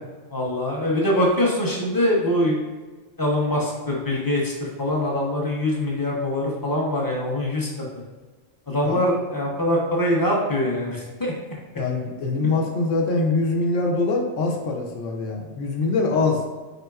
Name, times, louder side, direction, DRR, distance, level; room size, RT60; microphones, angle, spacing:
voice 1, 0.3-2.6 3.2-7.7 8.7-11.3 12.4-12.5, left 1 dB, 25° left, -3 dB, 0.5 m, -23 dB
voice 2, 11.8-16.4, left 3 dB, 75° left, 1 dB, 1.0 m, -23 dB
4.2 x 3.7 x 2.3 m, 1.3 s
omnidirectional pair, 1.3 m